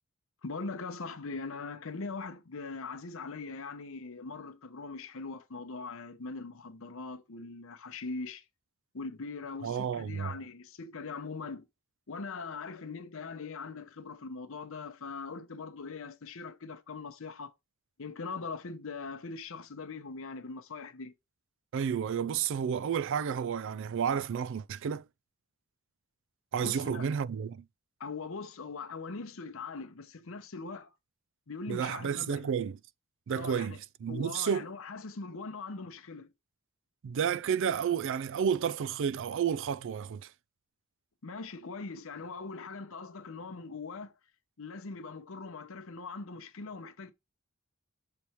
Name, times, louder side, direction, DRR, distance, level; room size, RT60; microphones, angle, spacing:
voice 1, 0.4-8.4 8.9-11.6 12.1-17.5 18.0-21.1 26.6-27.1 28.0-30.9 31.5-32.5 33.3-33.8 34.1-36.3 41.2-44.1 44.6-47.1, left 4 dB, 65° left, 0.8 m, -41 dB
voice 2, 9.6-10.4 21.7-25.0 26.5-27.6 31.7-32.8 33.3-34.7 37.0-40.3, right 7 dB, 60° right, 0.4 m, -31 dB
6.9 x 3.2 x 4.4 m
head